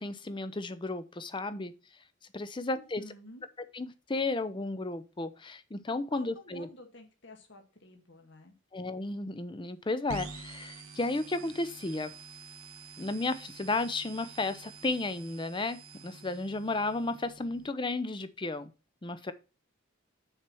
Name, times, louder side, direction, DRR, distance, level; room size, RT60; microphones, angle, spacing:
voice 1, 0.0-1.7 2.3-3.0 3.7-6.7 8.7-12.1 13.0-18.7 19.0-19.3, left 2 dB, 25° left, 13 dB, 0.5 m, -33 dB
voice 2, 2.7-3.4 6.1-8.5, left 2 dB, 55° left, 4 dB, 1.7 m, -51 dB
sound 1, 10.1-17.7, right 3 dB, 90° right, 1.2 m, -47 dB
6.5 x 4.4 x 6.1 m, 0.32 s
head